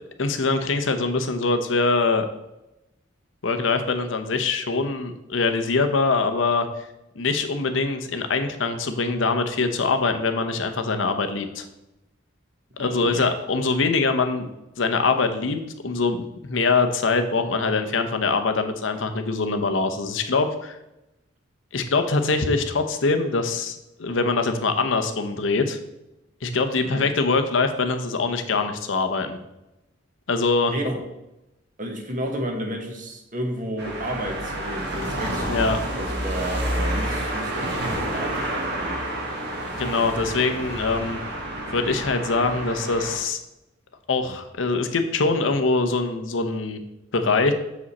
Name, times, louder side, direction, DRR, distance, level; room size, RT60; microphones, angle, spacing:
voice 1, 0.2-2.3 3.4-6.9 7.2-11.7 12.8-14.5 14.8-16.2 16.4-20.8 21.7-25.8 26.4-29.4 30.3-30.7 35.5-35.8 39.8-41.2 41.7-43.4 44.1-46.8 47.1-47.5, left 3 dB, 80° left, 7 dB, 0.7 m, -23 dB
voice 2, 12.8-13.3 26.8-27.0 30.7-31.0 31.8-39.0, equal, 45° right, 3 dB, 1.3 m, -32 dB
sound 1, 33.8-43.2, right 1 dB, 60° right, 1.4 m, -29 dB
7.1 x 5.0 x 4.1 m, 0.92 s
head